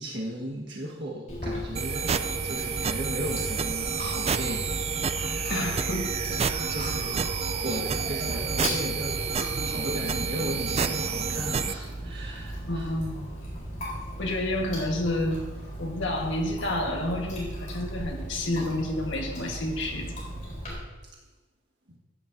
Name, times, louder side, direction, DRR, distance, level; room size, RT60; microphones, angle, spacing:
voice 1, 0.0-5.6 6.7-9.2 9.6-12.9 21.9-22.0, right 1 dB, 60° right, -3 dB, 1.6 m, -36 dB
Chewing mastication, 1.3-20.7, equal, 35° left, 3.9 m, -37 dB
sound 1, 1.8-11.7, right 6 dB, 30° right, 0.4 m, -29 dB
voice 2, 5.5-6.8 12.7-13.3 14.2-15.4 15.8-20.2, left 1 dB, 65° left, 1 dB, 1.6 m, -30 dB
15.0 x 9.4 x 2.7 m, 1.2 s
head